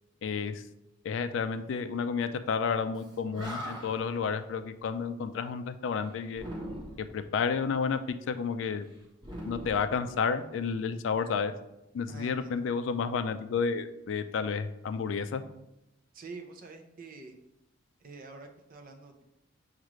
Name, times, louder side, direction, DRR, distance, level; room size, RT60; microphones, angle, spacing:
voice 1, 0.2-0.6 1.0-6.4 7.0-8.9 9.5-11.5 11.9-15.4, left 5 dB, 70° left, 11 dB, 0.3 m, -31 dB
Animal, 3.0-3.1 3.3-4.2 6.3-7.2 9.2-10.5, equal, 25° right, 0.8 m, -41 dB
voice 2, 12.1-12.6 16.1-17.4 18.0-19.2, right 3 dB, 45° right, 5 dB, 0.5 m, -47 dB
6.1 x 2.4 x 3.0 m, 0.88 s
head